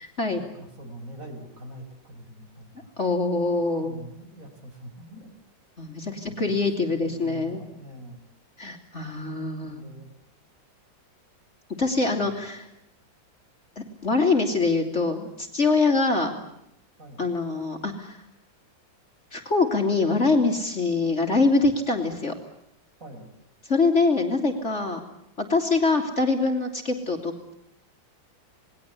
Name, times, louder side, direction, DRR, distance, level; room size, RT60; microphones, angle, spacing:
voice 1, 0.3-2.9 3.7-5.3 6.1-8.2 9.6-10.1 12.0-12.4 17.0-17.2 23.0-23.3, right 1 dB, 45° right, 4 dB, 5.9 m, -44 dB
voice 2, 3.0-4.0 5.8-7.6 8.6-9.8 11.8-12.7 13.8-16.3 17.2-18.2 19.3-22.3 23.6-25.0 25.4-27.5, left 3 dB, 35° left, 3 dB, 3.0 m, -24 dB
28.5 x 20.5 x 8.3 m, 0.79 s
omnidirectional pair, 2.1 m